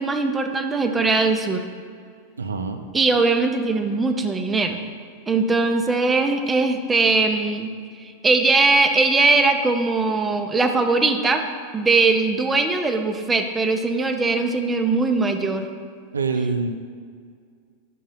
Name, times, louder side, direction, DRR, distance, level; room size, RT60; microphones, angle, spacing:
voice 1, 0.0-1.6 2.9-4.8 5.3-7.7 8.0-11.4 11.7-15.7, right 3 dB, 15° right, 6 dB, 0.5 m, -20 dB
voice 2, 2.4-2.8 16.1-16.7, right 4 dB, 75° right, 7 dB, 0.4 m, -25 dB
5.5 x 3.9 x 5.4 m, 2.1 s
figure-of-eight pair, 90°, 0 cm